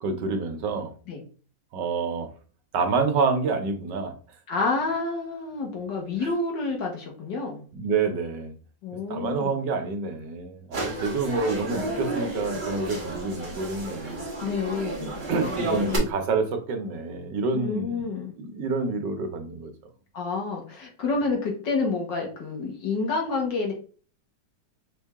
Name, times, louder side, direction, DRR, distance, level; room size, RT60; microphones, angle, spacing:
voice 1, 0.0-0.9 1.7-2.3 2.7-4.1 7.7-8.5 9.1-14.2 15.3-18.1 18.4-19.7, right 4 dB, 70° right, 6 dB, 1.4 m, -27 dB
voice 2, 4.5-7.6 8.8-9.6 14.4-15.2 15.6-16.1 17.5-18.3 20.1-23.7, left 3 dB, 70° left, 0 dB, 2.0 m, -29 dB
sound 1, 10.7-16.0, right 2 dB, 30° right, 1.3 m, -32 dB
5.2 x 2.7 x 3.5 m, 0.39 s
omnidirectional pair, 2.0 m